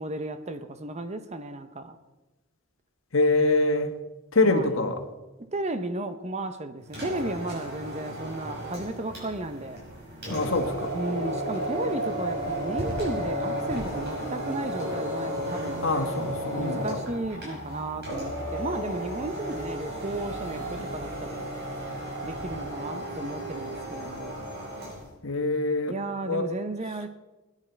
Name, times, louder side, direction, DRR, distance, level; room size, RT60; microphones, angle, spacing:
voice 1, 0.0-2.0 4.4-4.8 5.5-9.8 10.9-15.8 16.6-21.4 22.2-24.3 25.9-27.1, right 2 dB, 30° right, 10 dB, 0.8 m, -34 dB
voice 2, 3.1-3.9 4.3-5.0 10.3-10.9 15.8-17.0 25.2-25.9 26.2-26.5, left 2 dB, 70° left, 6 dB, 1.4 m, -24 dB
sound 1, 6.8-25.1, right 1 dB, 50° right, 6.0 m, -34 dB
sound 2, 13.2-20.0, left 1 dB, 50° left, 1.8 m, -44 dB
20.5 x 10.0 x 4.5 m, 1.1 s
head